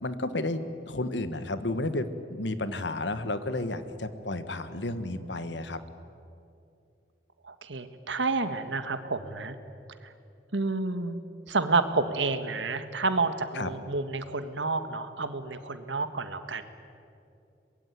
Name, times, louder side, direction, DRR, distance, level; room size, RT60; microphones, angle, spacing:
voice 1, 0.0-5.8 13.6-13.7, left 2 dB, 75° left, 11 dB, 1.5 m, -32 dB
voice 2, 5.0-5.6 7.4-9.6 10.0-10.1 10.5-11.2 11.5-16.6, right 3 dB, 85° right, 10 dB, 1.7 m, -30 dB
24.0 x 21.0 x 9.5 m, 2.6 s
head